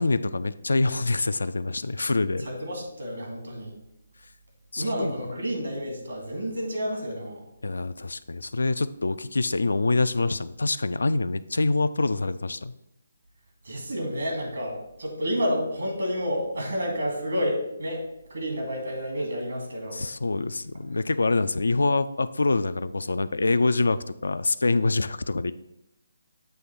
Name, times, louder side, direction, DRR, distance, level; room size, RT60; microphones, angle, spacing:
voice 1, 0.0-2.5 4.7-5.1 7.6-12.7 19.9-25.5, left 3 dB, 75° left, 13 dB, 0.3 m, -25 dB
voice 2, 2.4-3.8 4.8-7.4 13.6-18.0 18.3-20.0, equal, 75° right, 1 dB, 2.3 m, -30 dB
7.7 x 3.1 x 5.8 m, 0.83 s
figure-of-eight pair, 150°, 0 cm